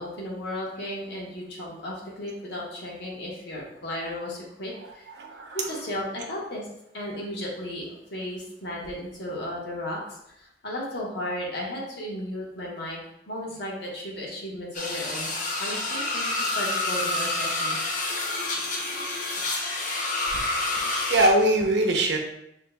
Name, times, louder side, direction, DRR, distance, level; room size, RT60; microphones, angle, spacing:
voice 1, 0.0-5.1 5.5-6.7 6.9-13.0 13.3-15.3 15.6-17.9, left 1 dB, 65° left, -3 dB, 1.3 m, -34 dB
voice 2, 5.2-5.7 20.3-22.2, right 1 dB, 70° right, 2 dB, 0.8 m, -23 dB
sound 1, 14.7-21.3, left 2 dB, 45° left, 0.8 m, -28 dB
6.2 x 3.0 x 2.3 m, 0.79 s
head